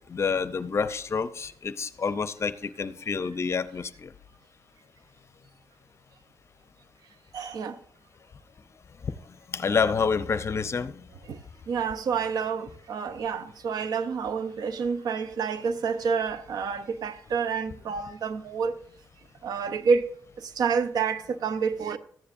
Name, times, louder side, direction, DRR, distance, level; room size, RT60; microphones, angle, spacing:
voice 1, 0.1-4.1 9.5-10.9, left 5 dB, 40° left, 0.7 m, -28 dB
voice 2, 7.3-7.8 11.2-11.4 11.7-18.8 19.4-20.1 20.4-22.0, right 6 dB, 75° right, 0.7 m, -28 dB
14.0 x 9.6 x 2.6 m
cardioid pair, 90°, 7 cm